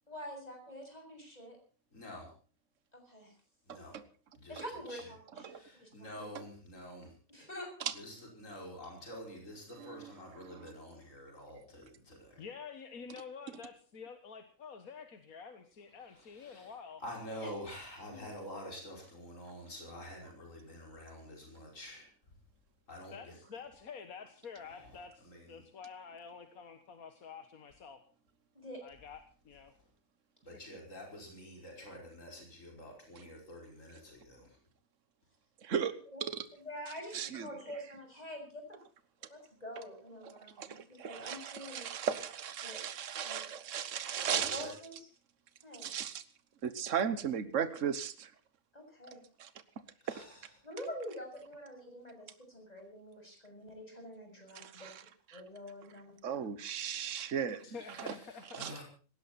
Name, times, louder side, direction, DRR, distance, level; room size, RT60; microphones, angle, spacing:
voice 1, 0.1-1.6 2.9-3.3 4.5-5.6 5.8-6.3 7.3-7.7 17.4-17.5 18.1-18.3 28.5-28.8 36.1-36.2 36.6-38.8 39.3-41.9 42.6-42.8 43.2-43.4 44.3-45.1 45.6-46.0 48.7-49.2 50.6-54.9 55.3-56.5, equal, 25° left, 3 dB, 7.2 m, -46 dB
voice 2, 1.9-2.3 3.7-4.0 4.3-4.6 4.9-5.0 5.5-7.1 7.9-12.4 16.1-16.7 17.0-22.1 22.9-23.4 24.6-25.6 30.4-34.6 44.3-44.7 50.0-50.4 57.8-58.8, equal, 65° left, 1 dB, 5.6 m, -48 dB
voice 3, 3.7-4.0 5.4-5.6 9.8-10.1 10.4-10.7 35.6-35.9 36.3-36.4 37.1-37.5 40.2-44.7 45.8-46.2 46.6-48.3 49.4-49.5 50.1-50.2 54.5-55.0 55.3-55.4 56.2-58.1 58.5-58.7, right 8 dB, 65° right, 13 dB, 1.6 m, -36 dB
voice 4, 12.4-17.0 23.1-28.0 28.8-29.2 29.5-29.7 30.7-30.8 57.6-58.7, left 6 dB, 85° left, 8 dB, 1.9 m, -48 dB
19.5 x 17.0 x 4.2 m, 0.40 s
omnidirectional pair, 1.5 m